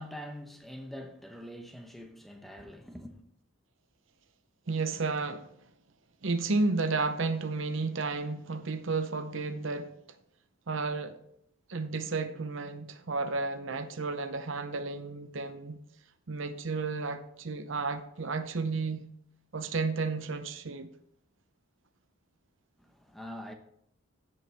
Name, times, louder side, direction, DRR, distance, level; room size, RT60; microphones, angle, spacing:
voice 1, 0.0-3.2 22.8-23.5, equal, ahead, 0.8 m, -44 dB
voice 2, 4.7-5.5 6.2-10.0 10.7-11.2 11.7-15.8 16.3-19.0 19.5-20.9, right 3 dB, 65° right, 0.7 m, -32 dB
15.5 x 5.4 x 3.4 m
head